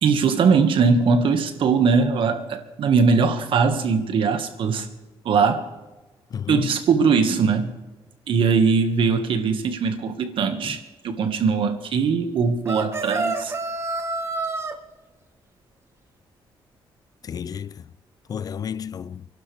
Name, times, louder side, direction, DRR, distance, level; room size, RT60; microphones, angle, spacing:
voice 1, 0.0-4.9 5.3-5.7 6.5-7.7 8.3-10.8 11.0-13.5, right 5 dB, 65° right, 1.8 m, -20 dB
voice 2, 6.3-6.8 10.6-10.8 17.2-17.8 18.3-19.3, left 8 dB, 40° left, 0.4 m, -31 dB
sound 1, 12.6-14.7, right 3 dB, 30° right, 1.4 m, -28 dB
29.0 x 11.5 x 3.5 m
cardioid pair, 140°, 9 cm